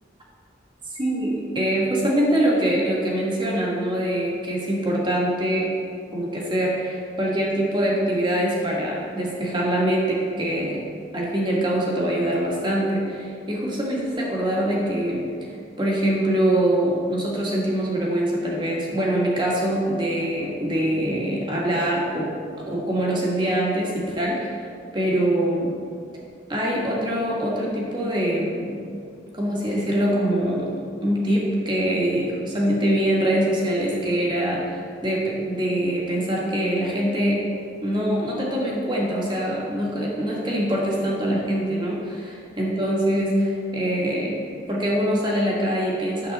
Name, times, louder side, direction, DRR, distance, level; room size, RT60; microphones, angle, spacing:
voice 1, 1.0-5.7 6.1-10.8 11.1-15.3 15.8-24.6 24.9-25.8 26.5-28.8 29.3-37.4 37.8-42.3 42.6-44.4 44.7-46.3, right 1 dB, 25° right, -3 dB, 1.7 m, -24 dB
10.0 x 7.5 x 4.0 m, 2.3 s
head